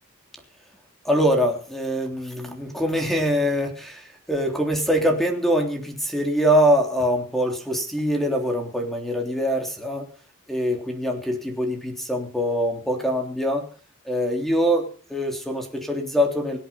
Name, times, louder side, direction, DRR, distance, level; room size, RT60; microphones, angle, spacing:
voice 1, 1.0-10.1 10.5-13.7 14.0-16.6, equal, ahead, 3 dB, 3.4 m, -23 dB
24.5 x 8.8 x 5.6 m, 0.43 s
head